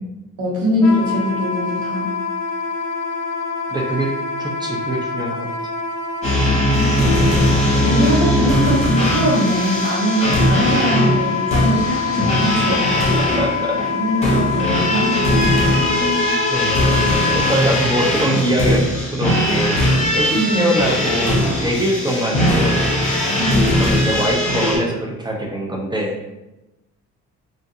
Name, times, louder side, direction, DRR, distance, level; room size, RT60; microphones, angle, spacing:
voice 1, 0.4-2.1 6.5-6.9 7.6-12.8 13.9-16.3 20.3-20.7 23.4-23.8, equal, 75° right, -3 dB, 0.9 m, -22 dB
Wind instrument woodwind instrument, 0.8-17.6, left 5 dB, 65° left, 0.4 m, -25 dB
voice 2, 3.7-4.1 4.4-5.5 13.4-13.7 16.5-17.1 17.3-19.8 20.1-22.9 23.8-26.1, equal, 15° right, -1 dB, 0.4 m, -23 dB
sound 1, 6.2-24.8, left 1 dB, 20° left, 1.1 m, -19 dB
2.5 x 2.3 x 2.5 m, 0.99 s
cardioid pair, 90°, 30 cm